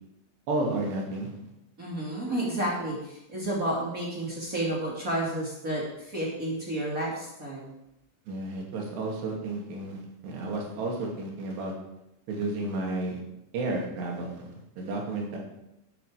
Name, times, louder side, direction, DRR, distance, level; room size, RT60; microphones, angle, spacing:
voice 1, 0.5-1.3 8.3-11.7 12.3-13.2 13.5-14.5 14.8-15.4, right 2 dB, 60° right, 0 dB, 4.3 m, -32 dB
voice 2, 1.8-7.7, right 1 dB, 30° right, -4 dB, 1.6 m, -31 dB
12.0 x 9.9 x 5.0 m, 0.86 s
omnidirectional pair, 5.7 m